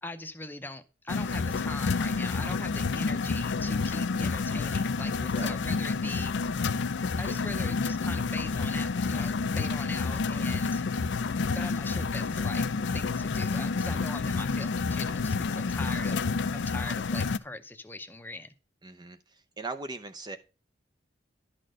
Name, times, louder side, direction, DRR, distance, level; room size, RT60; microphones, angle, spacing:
voice 1, 0.0-6.3 7.2-10.8 11.5-12.6 12.9-18.5, left 2 dB, 10° left, 8 dB, 0.7 m, -41 dB
sound 1, 1.1-17.4, left 4 dB, 80° left, 0.5 m, -29 dB
voice 2, 10.5-10.8 14.3-14.4 15.6-15.8 18.8-20.4, right 3 dB, 25° right, 8 dB, 0.5 m, -41 dB
11.5 x 4.3 x 6.2 m, 0.33 s
head